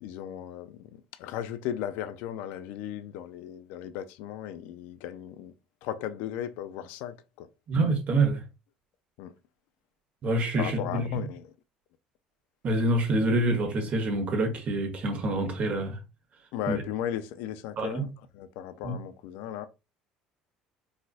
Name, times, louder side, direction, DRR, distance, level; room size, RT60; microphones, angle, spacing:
voice 1, 0.0-5.5 5.8-7.5 9.2-9.3 10.6-11.5 16.5-18.1 18.3-19.7, left 10 dB, 75° left, 0.3 m, -36 dB
voice 2, 7.7-8.4 10.2-11.2 12.6-16.0 16.7-16.8 17.8-18.1 18.8-19.0, right 2 dB, 50° right, 1.2 m, -26 dB
4.1 x 2.5 x 2.4 m
supercardioid pair, 80°, 3 cm